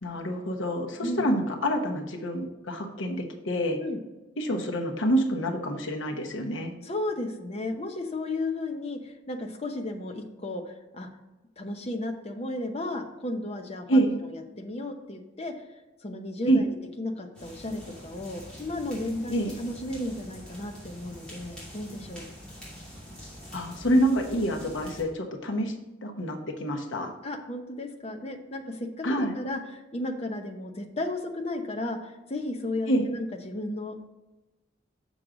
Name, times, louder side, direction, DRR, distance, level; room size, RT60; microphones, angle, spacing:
voice 1, 0.0-3.8 4.4-6.7 13.9-14.1 16.5-16.7 19.3-19.6 23.5-25.7 26.0-27.1 29.0-29.3 32.9-33.1, right 1 dB, 75° left, 3 dB, 1.0 m, -27 dB
voice 2, 6.8-11.1 11.6-15.5 16.0-22.3 27.2-34.1, left 2 dB, 30° left, 4 dB, 0.7 m, -34 dB
sound 1, 17.3-25.0, equal, 5° left, 2.5 m, -45 dB
6.5 x 6.2 x 3.8 m, 1.1 s
head